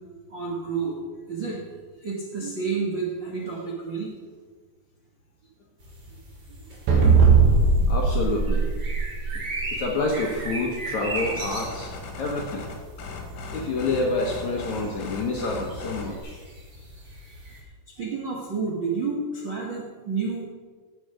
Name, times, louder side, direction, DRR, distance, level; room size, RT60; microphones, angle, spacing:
voice 1, 0.3-1.0 1.3-1.6 2.0-4.1 6.5-6.7 7.1-7.3 18.0-20.4, right 4 dB, 55° right, -4 dB, 1.3 m, -30 dB
sound 1, 5.8-17.6, right 2 dB, 30° right, 2.8 m, -38 dB
sound 2, 6.9-9.6, right 4 dB, 90° right, 4.4 m, -18 dB
voice 2, 7.9-8.7 9.7-11.9 12.2-12.6 13.5-16.4, left 2 dB, 65° left, 0 dB, 2.0 m, -28 dB
sound 3, 11.2-16.2, left 3 dB, 85° left, 4.0 m, -38 dB
16.0 x 7.9 x 5.0 m, 1.4 s
omnidirectional pair, 4.8 m